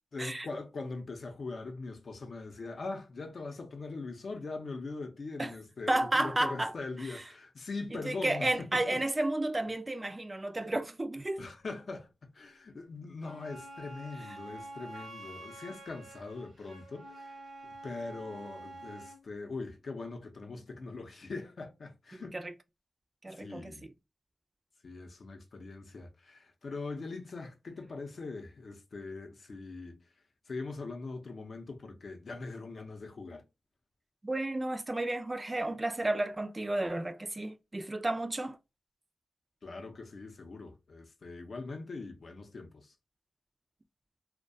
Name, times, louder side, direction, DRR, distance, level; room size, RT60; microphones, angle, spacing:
voice 1, 0.1-9.0 11.4-22.4 23.3-23.9 24.8-30.0 30.5-33.4 39.6-42.9, left 3 dB, 60° left, 0.5 m, -42 dB
voice 2, 5.9-6.7 8.0-11.5 22.1-22.5 23.2-23.7 34.2-38.6, right 2 dB, 25° right, 0.3 m, -32 dB
Wind instrument woodwind instrument, 13.2-19.2, right 2 dB, 70° right, 0.8 m, -48 dB
2.3 x 2.2 x 2.5 m
cardioid pair, 80°, 0 cm